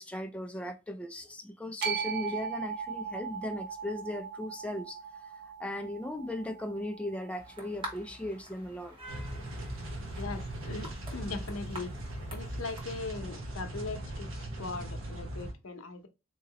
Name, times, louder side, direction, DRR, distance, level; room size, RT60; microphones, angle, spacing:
voice 1, 0.0-9.0, left 1 dB, 5° left, 0.3 m, -38 dB
sound 1, 1.8-8.0, right 6 dB, 55° right, 0.9 m, -39 dB
sound 2, 7.4-13.2, right 1 dB, 25° right, 1.0 m, -47 dB
sound 3, 9.1-15.5, right 1 dB, 80° right, 1.0 m, -39 dB
voice 2, 10.2-11.9 12.3-16.1, left 3 dB, 90° left, 0.7 m, -40 dB
3.8 x 2.9 x 2.8 m
head